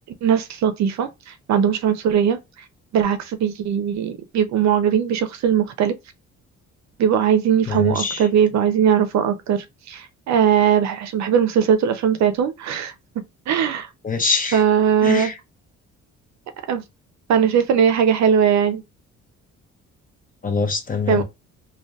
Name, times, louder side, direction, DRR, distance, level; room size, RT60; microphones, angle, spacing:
voice 1, 0.2-2.4 2.9-6.0 7.0-12.9 13.5-13.9 14.5-15.3 16.7-16.8 17.3-18.8 21.1-21.2, right 8 dB, 65° right, 0.5 m, -19 dB
voice 2, 7.7-8.3 14.0-14.6 15.0-15.3 20.4-21.2, left 4 dB, 30° left, 0.7 m, -23 dB
2.6 x 2.3 x 2.2 m
cardioid pair, 90°, 30 cm